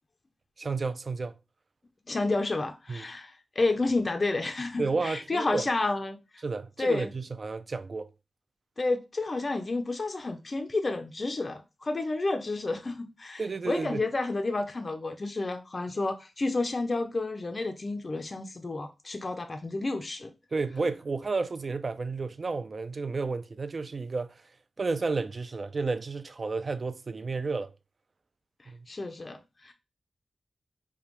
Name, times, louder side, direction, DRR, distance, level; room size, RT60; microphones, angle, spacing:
voice 1, 0.6-1.4 2.9-3.1 4.8-5.7 6.4-8.1 13.4-14.1 20.5-24.4 24.8-27.7 28.7-28.8, right 4 dB, 40° right, 0.4 m, -31 dB
voice 2, 2.1-6.4 6.8-7.1 8.8-20.3 28.9-29.7, left 3 dB, 30° left, 0.4 m, -30 dB
5.1 x 2.2 x 2.9 m
wide cardioid pair, 150°, 0 cm